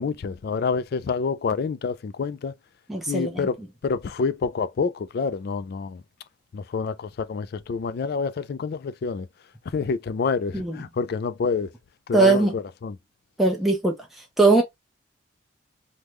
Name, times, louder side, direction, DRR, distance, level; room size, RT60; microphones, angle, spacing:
voice 1, 0.0-2.5 3.1-3.6 3.8-6.0 6.5-9.3 9.7-11.7 12.1-13.0, left 5 dB, 55° left, 0.3 m, -27 dB
voice 2, 2.9-3.5 10.5-10.8 12.1-12.5 13.4-14.0 14.4-14.6, right 3 dB, ahead, 0.6 m, -20 dB
3.5 x 2.2 x 3.0 m
head